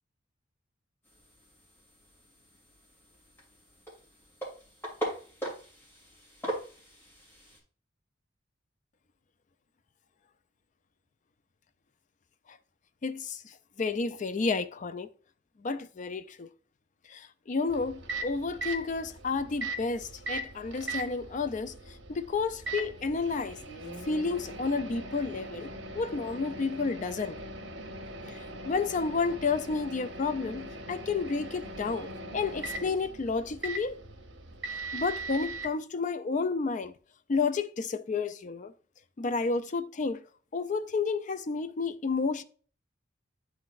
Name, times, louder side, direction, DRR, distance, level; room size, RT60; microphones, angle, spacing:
sound 1, 1.0-7.6, right 1 dB, 10° left, 2.5 m, -41 dB
voice 1, 13.0-15.1 15.6-16.5 17.1-21.7 22.1-23.6 24.1-27.4 28.3-34.0 34.9-36.9 37.3-38.7 39.2-40.2 40.5-42.4, left 4 dB, 40° left, 0.4 m, -31 dB
Microwave oven, 17.7-35.7, right 2 dB, 75° right, 1.2 m, -40 dB
11.5 x 3.9 x 2.5 m
head